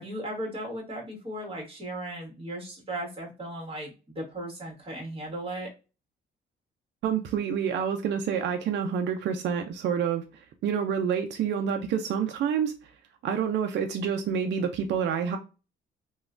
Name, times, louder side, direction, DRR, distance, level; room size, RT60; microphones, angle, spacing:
voice 1, 0.0-5.7, right 1 dB, 30° right, -2 dB, 1.6 m, -36 dB
voice 2, 7.0-10.2 10.6-12.7 13.2-15.4, right 7 dB, 65° right, 6 dB, 0.4 m, -28 dB
3.0 x 2.2 x 2.4 m, 0.31 s
cardioid pair, 90°, 20 cm